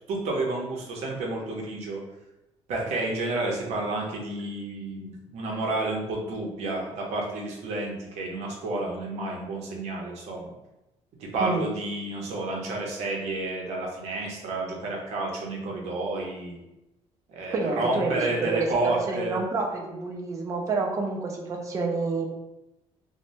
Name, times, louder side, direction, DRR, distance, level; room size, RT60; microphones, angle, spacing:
voice 1, 0.1-2.0 2.7-10.5 11.2-16.6 17.3-19.4, right 2 dB, 65° right, -1 dB, 0.7 m, -30 dB
voice 2, 17.5-22.3, right 3 dB, 25° right, 1 dB, 0.4 m, -28 dB
3.0 x 2.1 x 2.5 m, 0.94 s
cardioid pair, 180°, 12 cm